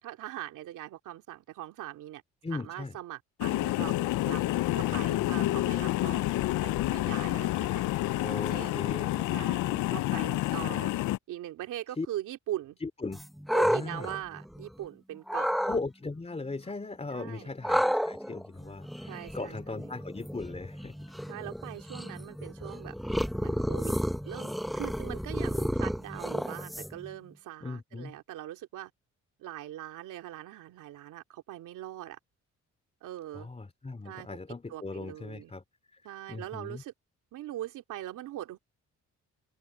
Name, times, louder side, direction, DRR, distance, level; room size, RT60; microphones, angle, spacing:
voice 1, 0.0-2.2 2.5-4.0 4.2-4.4 4.7-6.2 6.6-7.8 8.4-8.7 9.3-9.6 9.9-11.0 11.3-12.8 13.5-15.5 17.1-17.5 19.1-19.9 21.3-22.9 23.4-23.9 24.3-28.9 29.4-32.2 33.0-33.5 34.0-34.3 34.7-35.5 36.0-36.9 37.3-38.6, right 13 dB, 85° right, 2.6 m, -41 dB
voice 2, 2.4-3.0 4.9-5.7 8.2-9.8 12.0-12.1 12.8-13.2 13.6-14.1 15.6-21.1 27.6-28.2 33.3-35.6 36.3-36.8, left 3 dB, 20° left, 3.1 m, -38 dB
sound 1, 3.4-11.2, left 16 dB, 80° left, 0.6 m, -29 dB
sound 2, 13.1-14.8 15.3-15.8 17.6-27.1, equal, ahead, 1.1 m, -32 dB
cardioid pair, 90°, 30 cm